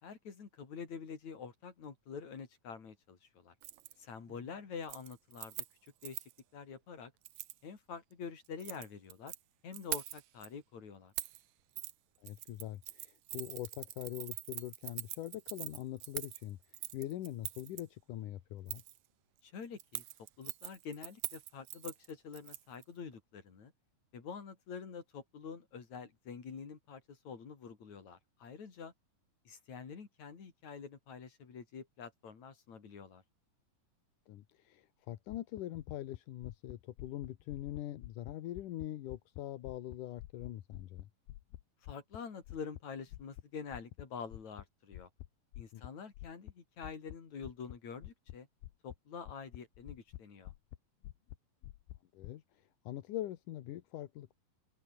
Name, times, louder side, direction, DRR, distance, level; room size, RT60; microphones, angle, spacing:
voice 1, 0.0-3.5 4.0-5.6 6.0-6.2 6.5-7.1 7.6-9.3 9.6-11.1 19.4-20.0 20.4-23.7 24.1-28.9 29.4-33.2 41.8-45.1 45.6-48.5 48.8-50.5, left 6 dB, 50° left, 4.8 m, -47 dB
Keys jangling, 3.6-3.9 4.3-4.6 4.8-6.4 7.2-7.6 8.4-9.4 9.7-10.5 11.2-11.4 11.8-11.9 12.2-17.8 18.7-19.0 19.8-22.8 23.1-23.2, right 16 dB, 80° right, 1.6 m, -43 dB
voice 2, 12.2-18.8 34.3-41.1 45.7-45.8 52.1-54.4, left 13 dB, 65° left, 2.5 m, -43 dB
sound 1, 35.3-39.4 39.7-42.8 43.1-43.4 43.7-44.0 44.3-44.7 44.9-45.3 45.5-45.9 46.1-46.5 46.8-47.2 47.4-47.8 48.0-48.4 48.6-49.0 49.3-50.2 50.5-50.8 51.0-51.4 51.6-52.3, left 16 dB, 85° left, 2.9 m, -48 dB
open air
omnidirectional pair, 4.3 m